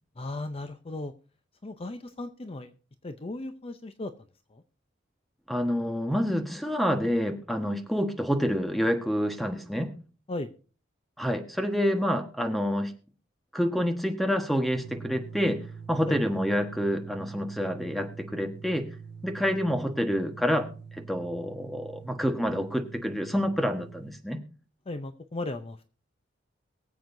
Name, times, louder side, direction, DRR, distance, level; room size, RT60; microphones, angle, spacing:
voice 1, 0.2-1.1 1.6-2.7 3.0-4.1 4.5-4.6 10.3-10.5 16.1-16.2 24.9-25.9, left 2 dB, 30° left, 9 dB, 0.6 m, -36 dB
voice 2, 5.5-9.9 11.2-12.9 13.5-15.6 15.9-18.8 19.2-20.7 21.1-24.4, equal, ahead, 6 dB, 1.2 m, -28 dB
sound 1, 14.7-24.1, right 5 dB, 60° right, 1.3 m, -45 dB
23.0 x 7.7 x 2.6 m, 0.38 s
head